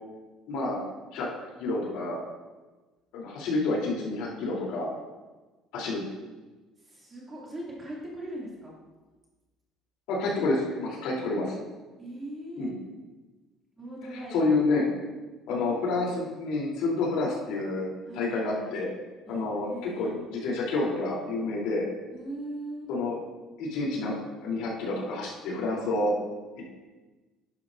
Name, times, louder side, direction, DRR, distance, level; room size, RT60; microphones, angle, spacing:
voice 1, 0.5-0.8 1.1-1.3 1.6-2.2 3.1-4.9 5.7-6.0 10.1-11.5 12.6-12.7 14.1-14.9 15.5-17.9 18.1-18.9 19.3-21.8 22.9-23.2 23.6-26.1 26.6-26.7, left 2 dB, 75° left, -4 dB, 3.3 m, -29 dB
voice 2, 6.8-8.7 12.0-12.7 13.8-14.3 15.5-16.3 16.7-17.3 18.1-18.7 19.3-20.2 22.1-22.9, right 1 dB, 20° right, -5 dB, 2.4 m, -41 dB
11.5 x 10.5 x 2.6 m, 1.2 s
cardioid pair, 170°, 0 cm